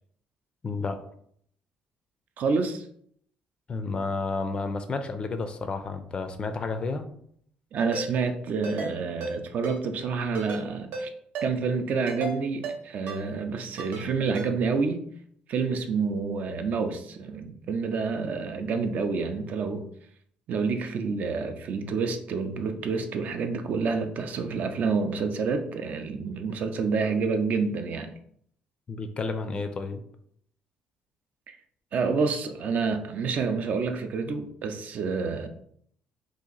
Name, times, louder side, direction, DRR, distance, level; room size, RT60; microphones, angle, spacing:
voice 1, 0.6-1.0 3.7-7.1 28.9-30.0, left 3 dB, 30° left, 8 dB, 0.4 m, -31 dB
voice 2, 2.4-2.9 7.7-11.1 11.4-15.0 15.5-19.9 20.5-28.1 31.5-31.6 31.9-35.5, right 5 dB, 55° right, 7 dB, 0.4 m, -28 dB
Ringtone, 7.9-8.1 8.6-8.9 9.2-9.3 9.6-9.8 10.4-10.6 10.9-11.1 11.4-11.5 12.1-12.3 12.6-12.8 13.1-13.2 13.8-14.0 14.4-14.5, right 3 dB, 85° right, 1.0 m, -33 dB
2.8 x 2.5 x 3.9 m, 0.65 s
cardioid pair, 135°, 3 cm